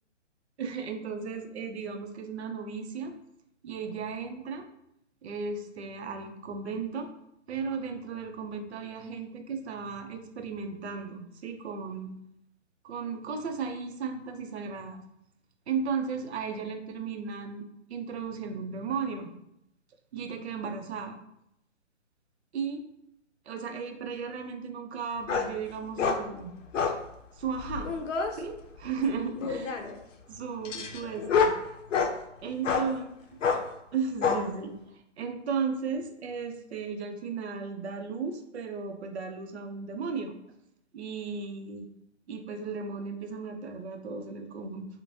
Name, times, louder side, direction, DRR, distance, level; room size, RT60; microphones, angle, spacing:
voice 1, 0.6-3.1 3.6-4.6 5.2-7.1 7.5-12.1 12.8-15.0 15.7-19.3 20.1-21.2 22.5-22.8 23.5-26.5 27.3-27.9 28.3-29.8 30.3-31.5 32.4-33.1 33.9-40.3 40.9-41.9 42.3-44.9, right 5 dB, 60° right, 6 dB, 0.5 m, -35 dB
sound 1, 25.3-25.5 26.0-26.2 26.7-27.0 27.5-28.3 29.4-29.9 30.6-32.2 32.6-32.9 33.4-33.6 34.2-34.4, left 5 dB, 80° left, 0.5 m, -27 dB
3.0 x 2.1 x 2.6 m, 0.79 s
hypercardioid pair, 150°, 37 cm